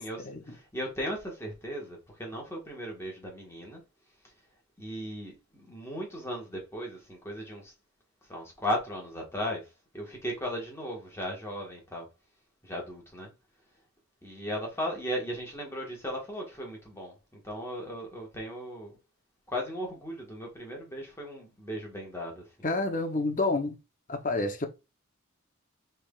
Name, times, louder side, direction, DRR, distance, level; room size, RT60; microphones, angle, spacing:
voice 1, 0.0-3.8 4.8-7.7 8.3-9.7 9.9-12.1 12.6-13.3 14.2-19.0 19.5-22.5, equal, 10° left, 1.4 m, -36 dB
voice 2, 22.6-23.8 24.1-24.7, left 2 dB, 40° left, 0.8 m, -28 dB
6.1 x 3.4 x 2.4 m
head